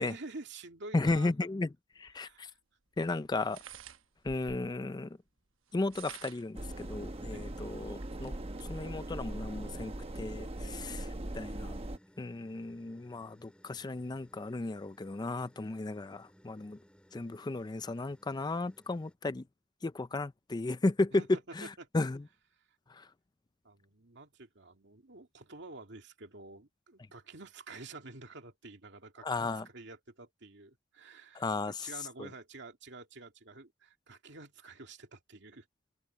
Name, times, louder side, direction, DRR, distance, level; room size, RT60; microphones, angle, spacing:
voice 1, 0.0-1.3 2.2-2.6 7.3-7.6 10.6-10.9 21.1-21.9 22.5-22.7 23.6-35.7, right 3 dB, 60° right, 2.5 m, -49 dB
voice 2, 0.9-1.7 2.0-2.5 3.0-3.6 4.2-5.2 5.7-8.3 8.7-11.8 12.2-16.8 17.1-19.4 19.8-21.2 21.6-21.7 21.9-22.2 22.9-23.1 29.2-29.7 31.3-31.9 32.2-32.3, left 2 dB, 20° left, 0.4 m, -34 dB
sound 1, 2.1-2.2 3.4-4.8 5.7-6.6 7.2-7.3 7.6-8.7, right 5 dB, 85° right, 1.1 m, -49 dB
sound 2, 6.5-12.0, right 1 dB, 30° right, 0.9 m, -40 dB
sound 3, 6.6-19.1, equal, 5° left, 5.1 m, -62 dB
head